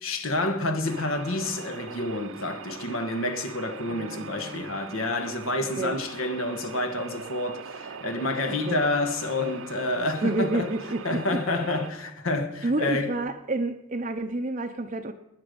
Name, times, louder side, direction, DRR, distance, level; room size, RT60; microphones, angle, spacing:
voice 1, 0.0-10.7 11.0-13.1, left 2 dB, 75° left, 1.5 m, -29 dB
sound 1, 0.8-11.9, right 6 dB, 70° right, 0.7 m, -42 dB
voice 2, 3.9-4.8 5.8-6.0 8.5-8.8 10.2-11.4 12.6-15.1, right 2 dB, 35° right, 0.6 m, -29 dB
19.5 x 9.7 x 5.3 m
head